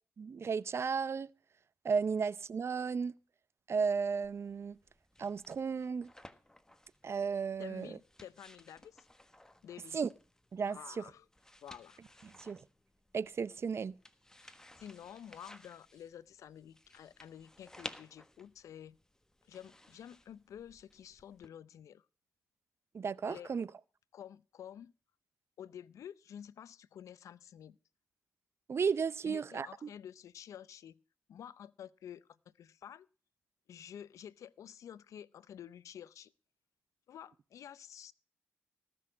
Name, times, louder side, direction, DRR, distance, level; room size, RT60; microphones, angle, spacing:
voice 1, 0.2-1.3 1.8-3.1 3.7-4.8 5.2-6.1 7.0-8.0 9.9-10.1 10.5-11.0 12.4-12.6 13.1-14.0 22.9-23.7 28.7-29.9, right 5 dB, 55° right, 0.6 m, -34 dB
sound 1, 4.2-21.5, left 1 dB, 10° left, 1.4 m, -56 dB
voice 2, 7.6-9.1 9.6-10.0 10.7-11.2 11.6-12.0 14.4-19.0 19.4-22.1 23.2-23.6 24.1-24.9 25.6-27.8 29.2-31.0 31.3-33.1 33.7-36.3 37.1-38.1, left 9 dB, 80° left, 0.5 m, -50 dB
18.5 x 6.2 x 6.2 m
supercardioid pair, 55°, 5 cm